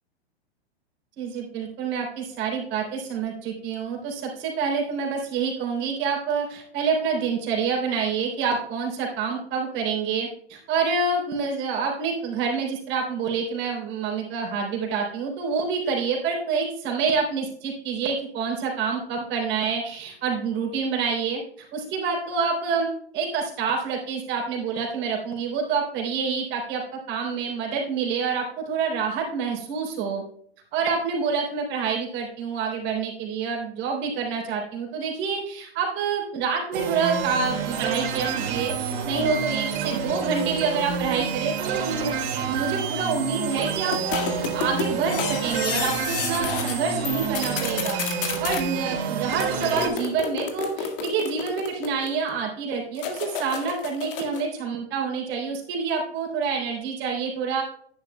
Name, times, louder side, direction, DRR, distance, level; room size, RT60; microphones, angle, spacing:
voice 1, 1.2-30.2 30.7-48.0 48.4-57.6, right 5 dB, 35° right, -1 dB, 3.6 m, -27 dB
sound 1, 36.7-49.9, right 6 dB, 60° right, 2.2 m, -28 dB
sound 2, 43.9-46.8 47.0-48.6 49.3-52.3 53.0-54.5, left 6 dB, 55° left, 1.9 m, -31 dB
11.0 x 10.0 x 2.2 m, 0.62 s
hypercardioid pair, 110°, 32 cm